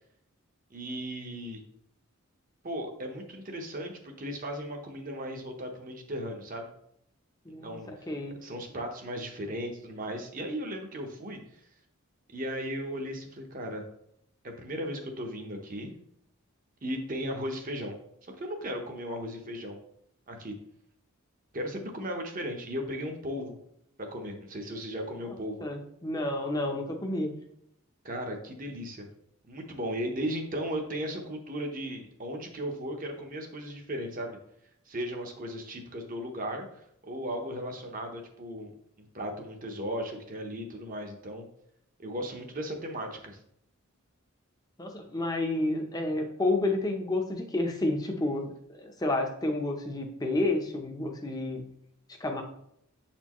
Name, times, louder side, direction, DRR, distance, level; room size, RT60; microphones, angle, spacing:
voice 1, 0.7-1.6 2.6-6.7 7.6-7.9 8.4-11.4 12.3-13.8 14.4-15.9 16.8-17.9 18.4-19.8 20.3-20.5 21.5-23.6 24.0-25.6 28.0-29.1 29.4-34.4 34.9-38.7 39.0-41.5 42.0-43.4, equal, 40° right, 3 dB, 0.9 m, -36 dB
voice 2, 7.5-8.4 25.6-27.3 44.8-51.6 52.2-52.4, left 2 dB, 15° left, 3 dB, 0.7 m, -30 dB
7.7 x 4.4 x 3.0 m, 0.73 s
head